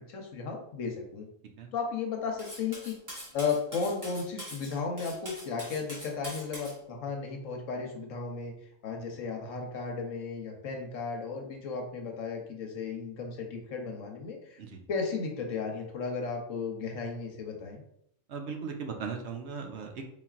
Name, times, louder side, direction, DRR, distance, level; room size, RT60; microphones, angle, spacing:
voice 1, 0.1-1.3 1.7-2.9 3.3-8.5 8.8-14.6 14.9-17.8, left 5 dB, 80° left, 2 dB, 1.2 m, -34 dB
Cutlery silverware, 2.4-6.8, equal, 15° right, 1.2 m, -43 dB
voice 2, 18.3-20.0, right 5 dB, 65° right, 3 dB, 0.9 m, -38 dB
4.1 x 3.8 x 2.4 m, 0.73 s
omnidirectional pair, 1.3 m